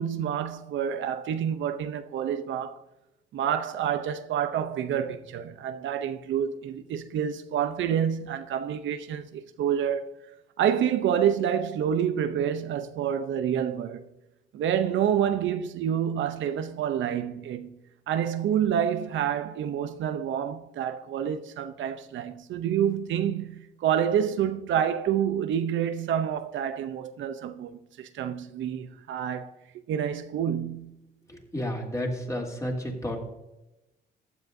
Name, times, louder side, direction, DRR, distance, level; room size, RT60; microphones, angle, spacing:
voice 1, 0.0-2.8 3.3-10.1 10.6-14.0 14.5-17.8 18.1-29.5 29.9-31.0, right 9 dB, 75° right, 0.7 m, -28 dB
voice 2, 31.3-33.2, equal, 15° left, 3.1 m, -31 dB
15.0 x 9.4 x 2.7 m
cardioid pair, 90°, 20 cm